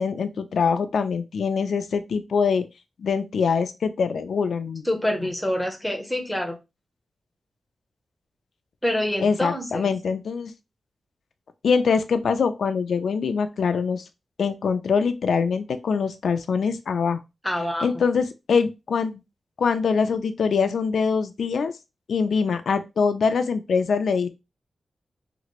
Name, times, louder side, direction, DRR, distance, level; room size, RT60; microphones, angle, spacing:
voice 1, 0.0-2.7 3.0-4.8 9.2-10.5 11.6-14.0 14.4-17.2 17.8-19.2 19.6-21.8 22.1-24.3, left 5 dB, 75° left, 9 dB, 0.3 m, -23 dB
voice 2, 4.8-6.6 8.8-9.9 17.4-17.9, left 1 dB, 5° left, 3 dB, 0.6 m, -26 dB
2.9 x 2.5 x 2.9 m, 0.24 s
wide cardioid pair, 175°, 0 cm